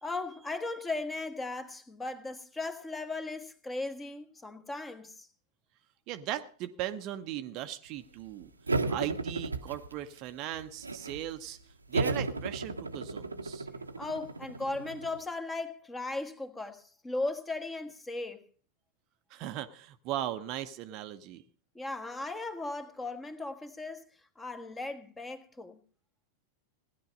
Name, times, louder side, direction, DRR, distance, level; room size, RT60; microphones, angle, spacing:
voice 1, 0.0-5.3 14.0-18.4 21.7-24.0 24.4-25.8, left 2 dB, 10° left, 1.4 m, -37 dB
voice 2, 6.1-8.5 8.9-13.7 19.3-21.4, right 12 dB, 40° right, 0.8 m, -38 dB
sound 1, 8.7-10.2 10.5-11.3 11.9-15.2, right 3 dB, 80° right, 0.9 m, -34 dB
17.0 x 10.5 x 5.3 m
figure-of-eight pair, 90°, 0 cm